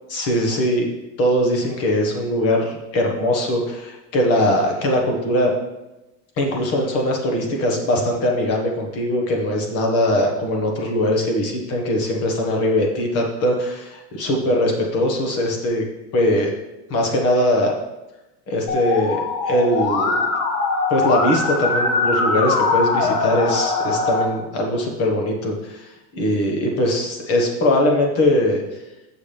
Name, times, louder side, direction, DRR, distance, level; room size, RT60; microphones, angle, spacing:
voice 1, 0.1-0.9 1.2-5.5 6.4-15.8 16.1-16.5 16.9-17.7 18.5-20.2 20.9-28.6, left 1 dB, 40° left, 1 dB, 1.5 m, -21 dB
Musical instrument, 18.7-24.2, left 3 dB, 80° left, 1.4 m, -21 dB
7.5 x 6.2 x 3.4 m, 1.0 s
supercardioid pair, 155°, 36 cm